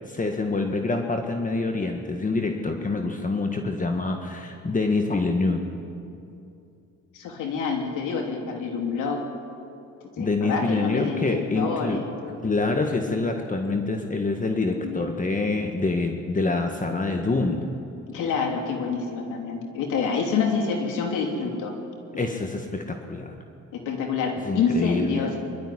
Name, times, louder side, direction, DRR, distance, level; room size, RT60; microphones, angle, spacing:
voice 1, 0.0-5.6 10.2-12.0 12.4-17.7 22.2-23.4 24.4-25.3, left 3 dB, 25° left, 4 dB, 1.6 m, -26 dB
voice 2, 7.1-9.3 10.2-12.4 14.8-15.1 18.1-21.8 23.7-25.5, left 5 dB, 90° left, 2 dB, 3.2 m, -27 dB
23.5 x 12.5 x 9.9 m, 2.6 s
cardioid pair, 90°, 30 cm